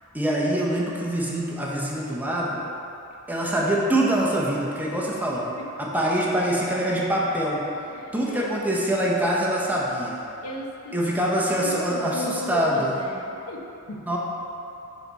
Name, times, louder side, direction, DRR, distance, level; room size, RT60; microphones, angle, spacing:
voice 1, 0.1-2.6 3.3-5.5 5.8-7.6 8.1-10.2 10.9-12.9 14.1-14.2, right 1 dB, 10° right, -4 dB, 0.7 m, -24 dB
voice 2, 5.6-5.9 6.3-6.4 6.8-7.0 7.9-8.6 10.4-11.1 11.6-14.1, left 1 dB, 85° left, 0 dB, 0.7 m, -36 dB
6.6 x 4.0 x 4.1 m, 2.8 s
head